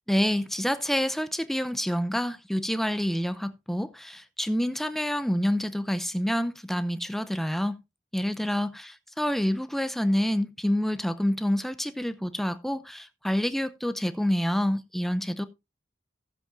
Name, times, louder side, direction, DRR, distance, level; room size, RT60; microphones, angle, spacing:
voice 1, 0.1-7.8 8.1-15.5, equal, ahead, 0.6 m, -27 dB
15.5 x 7.8 x 2.6 m
head